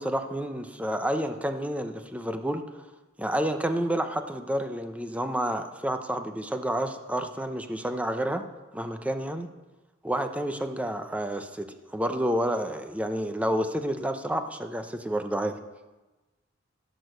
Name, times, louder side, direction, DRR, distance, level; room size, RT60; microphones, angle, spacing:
voice 1, 0.0-2.6 3.2-8.4 8.7-9.5 10.0-11.6 11.9-15.5, right 1 dB, 5° right, 7 dB, 0.7 m, -29 dB
16.0 x 6.3 x 6.6 m, 1.1 s
head